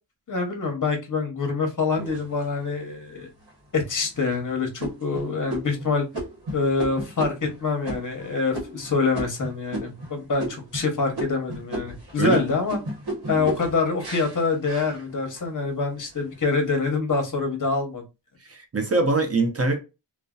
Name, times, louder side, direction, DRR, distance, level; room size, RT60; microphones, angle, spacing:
voice 1, 0.3-3.3 3.7-6.1 6.5-12.8 13.3-18.0, left 4 dB, 40° left, 0.8 m, -25 dB
sound 1, 2.0-2.8 3.4-3.5 4.0-4.3 4.8-10.1 10.4-10.9 11.1-15.5 15.9-16.5, right 1 dB, 55° right, 1.1 m, -34 dB
voice 2, 18.5-19.8, right 3 dB, 35° right, 0.6 m, -23 dB
2.6 x 2.1 x 2.3 m
wide cardioid pair, 115°, 45 cm